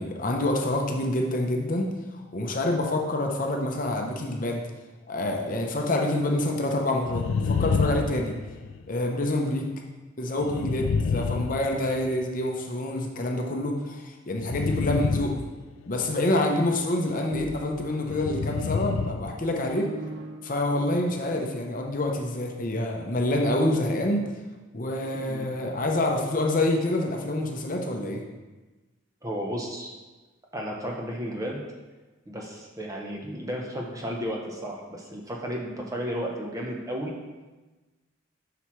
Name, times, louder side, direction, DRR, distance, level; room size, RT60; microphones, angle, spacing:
voice 1, 0.0-4.6 5.1-8.4 8.9-9.7 10.2-15.4 15.9-19.9 20.4-24.3 24.7-28.2, left 1 dB, 40° left, 1 dB, 0.7 m, -27 dB
sound 1, 7.0-8.9 10.4-12.3 14.4-16.1 18.1-19.4 19.6-19.7, left 5 dB, 80° left, 0.3 m, -28 dB
sound 2, 17.0-21.2, right 2 dB, 75° right, 0.6 m, -42 dB
voice 2, 25.1-25.4 29.2-29.9 30.5-31.6 32.3-37.2, equal, 15° right, -1 dB, 0.8 m, -33 dB
7.7 x 5.9 x 3.1 m, 1.2 s
head